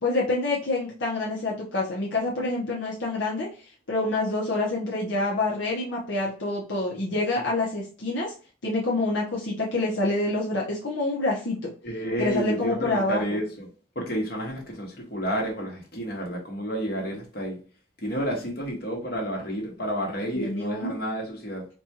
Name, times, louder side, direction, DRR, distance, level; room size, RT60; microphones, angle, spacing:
voice 1, 0.0-3.5 3.9-8.3 8.6-11.7 12.2-13.2 20.3-21.0, left 2 dB, 80° left, 0.8 m, -27 dB
voice 2, 11.8-13.7 13.9-17.6 18.0-21.7, equal, 55° left, 1.3 m, -30 dB
4.2 x 2.3 x 2.8 m
head